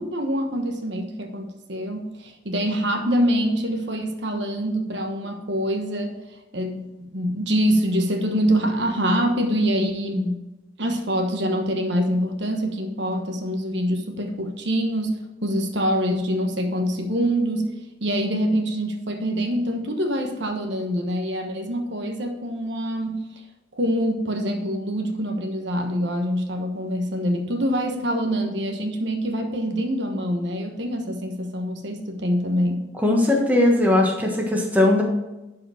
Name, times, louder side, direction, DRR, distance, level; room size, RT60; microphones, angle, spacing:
voice 1, 0.0-6.2 6.5-10.3 10.8-17.7 18.0-23.2 23.7-32.9, equal, 70° right, 4 dB, 1.2 m, -25 dB
voice 2, 33.0-35.0, left 1 dB, 10° right, -1 dB, 1.3 m, -19 dB
11.5 x 4.9 x 4.9 m, 1.0 s
head